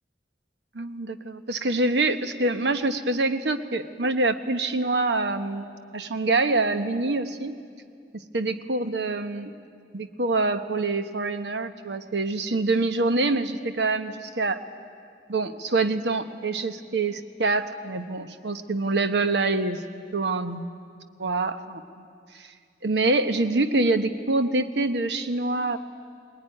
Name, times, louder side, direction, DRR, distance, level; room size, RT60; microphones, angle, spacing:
voice 1, 0.7-5.6 5.9-7.5 8.3-9.5 9.9-14.6 15.3-19.8 20.1-20.7 21.2-22.0 22.4-22.5 22.8-25.8, right 2 dB, 80° right, 9 dB, 1.1 m, -25 dB
20.0 x 20.0 x 9.8 m, 2.2 s
head